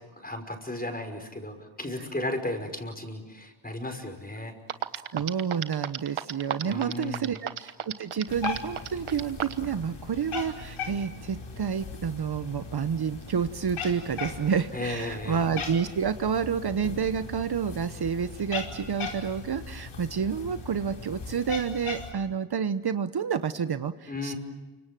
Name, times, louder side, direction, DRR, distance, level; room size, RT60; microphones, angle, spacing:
voice 1, 0.2-4.6 6.6-7.3 14.7-15.4 24.1-24.4, left 1 dB, 20° left, 5 dB, 5.7 m, -34 dB
sound 1, 4.4-4.5 4.7-9.6, right 9 dB, 85° right, 1.4 m, -32 dB
voice 2, 5.1-24.3, right 7 dB, 50° right, 11 dB, 1.0 m, -29 dB
Cat, 8.3-22.1, left 5 dB, 80° left, 5.0 m, -39 dB
29.5 x 25.5 x 7.7 m, 1.2 s
cardioid pair, 85°, 48 cm